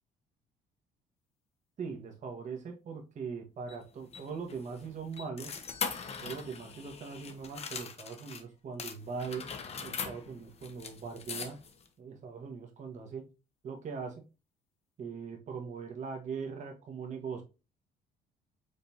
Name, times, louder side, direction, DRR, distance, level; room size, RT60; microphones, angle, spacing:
voice 1, 1.8-5.5 6.2-9.4 9.8-11.6 12.0-13.2 13.6-14.2 15.0-17.4, right 5 dB, 45° right, 4 dB, 1.2 m, -40 dB
sound 1, 3.7-8.4 8.8-11.9, left 6 dB, 40° left, 0.8 m, -41 dB
5.2 x 3.3 x 2.7 m, 0.29 s
cardioid pair, 110°, 17 cm